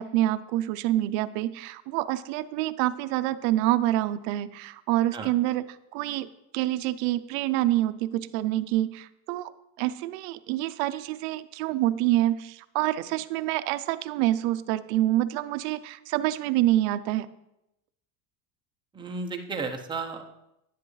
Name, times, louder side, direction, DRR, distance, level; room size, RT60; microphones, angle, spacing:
voice 1, 0.0-5.6 5.9-6.3 6.5-9.5 9.8-17.3, right 14 dB, 55° right, 12 dB, 0.6 m, -27 dB
voice 2, 18.9-20.2, right 4 dB, 10° right, 2 dB, 0.6 m, -33 dB
10.5 x 10.0 x 3.2 m, 0.87 s
cardioid pair, 170°, 41 cm